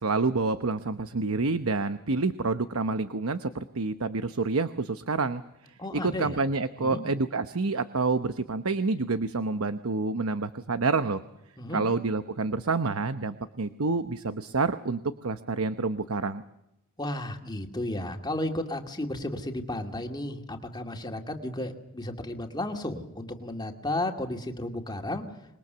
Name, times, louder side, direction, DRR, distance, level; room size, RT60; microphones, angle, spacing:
voice 1, 0.0-5.4 5.9-11.2 11.7-16.4, right 3 dB, 70° right, 11 dB, 0.9 m, -28 dB
voice 2, 5.8-6.4 6.8-7.0 11.6-11.8 17.0-25.2, left 1 dB, 20° left, 3 dB, 2.4 m, -33 dB
26.5 x 21.5 x 6.9 m, 0.86 s
head